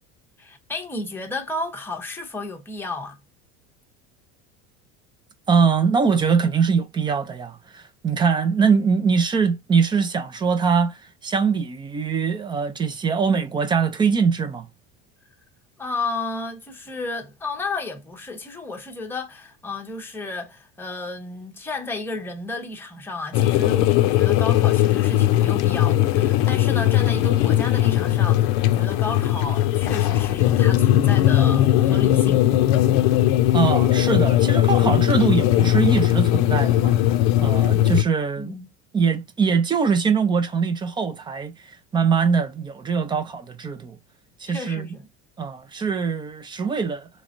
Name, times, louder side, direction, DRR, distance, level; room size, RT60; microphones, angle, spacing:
voice 1, 0.4-3.2 15.8-32.5 38.4-38.7 44.5-45.1, left 3 dB, 5° left, 0.7 m, -32 dB
voice 2, 5.5-14.7 33.5-38.5 38.9-44.0 44.4-44.9 45.4-47.1, right 5 dB, 15° right, 0.4 m, -22 dB
sound 1, 23.3-38.0, left 13 dB, 60° left, 0.6 m, -19 dB
4.2 x 3.1 x 2.4 m
cardioid pair, 150°, 32 cm